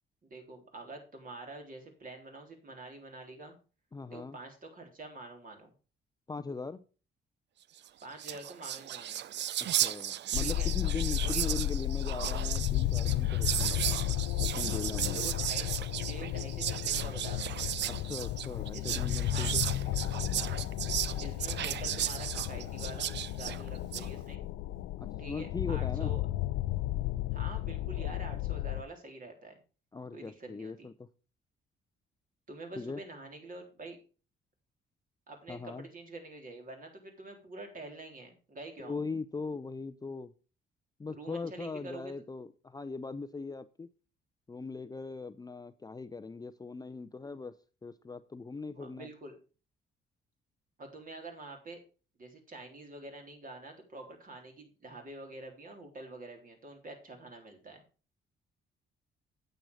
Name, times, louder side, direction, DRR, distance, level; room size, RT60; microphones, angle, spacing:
voice 1, 0.2-3.6 4.1-5.7 8.0-9.2 10.4-10.7 11.2-11.4 15.1-15.7 16.0-17.9 18.7-19.5 21.2-24.4 25.2-26.3 27.3-29.6 30.1-30.9 32.5-34.0 35.3-39.0 41.1-42.1 48.8-49.4 50.8-51.8 52.2-57.8, right 2 dB, 45° right, 3.7 m, -47 dB
voice 2, 3.9-4.4 6.3-6.8 9.6-14.0 14.4-15.3 17.9-19.6 25.0-26.2 29.9-31.1 32.8-33.0 35.5-35.9 38.8-40.3 41.0-43.9 44.5-49.1, left 4 dB, 20° left, 0.5 m, -40 dB
Whispering, 7.9-8.0 8.1-24.1, right 11 dB, 60° right, 0.5 m, -35 dB
sound 1, 10.3-28.8, left 14 dB, 90° left, 0.5 m, -33 dB
9.1 x 7.8 x 4.8 m
cardioid pair, 90°, 20 cm